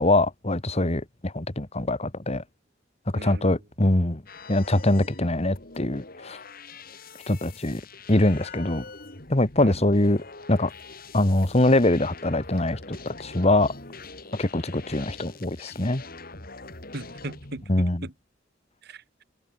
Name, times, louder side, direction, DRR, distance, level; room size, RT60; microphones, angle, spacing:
voice 1, 0.0-2.4 3.2-4.2 4.5-6.4 7.3-7.8 8.1-8.8 9.3-10.2 10.5-10.7 11.1-13.7 14.4-16.0 17.7-18.1, left 1 dB, 35° left, 1.8 m, -23 dB
voice 2, 3.1-3.5 9.6-9.8 16.9-18.1 18.8-19.2, right 2 dB, 60° right, 1.9 m, -38 dB
sound 1, 4.3-17.6, left 3 dB, 50° left, 5.7 m, -44 dB
head